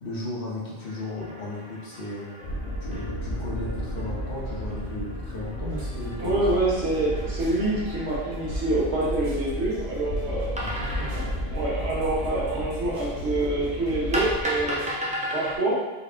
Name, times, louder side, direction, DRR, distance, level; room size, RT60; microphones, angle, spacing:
voice 1, 0.0-2.4 2.8-6.6 10.5-11.2, left 2 dB, 55° left, -6 dB, 1.2 m, -35 dB
sound 1, 0.8-8.8 10.6-12.7 14.1-15.6, equal, 10° right, 0.4 m, -36 dB
sound 2, 2.4-14.4, equal, 80° left, 0.9 m, -33 dB
sound 3, 5.7-14.9, equal, 65° right, 1.1 m, -44 dB
voice 2, 6.2-10.5 11.1-14.9 15.3-15.8, right 2 dB, 85° right, -5 dB, 1.4 m, -26 dB
4.0 x 2.4 x 3.6 m, 1.2 s
omnidirectional pair, 1.1 m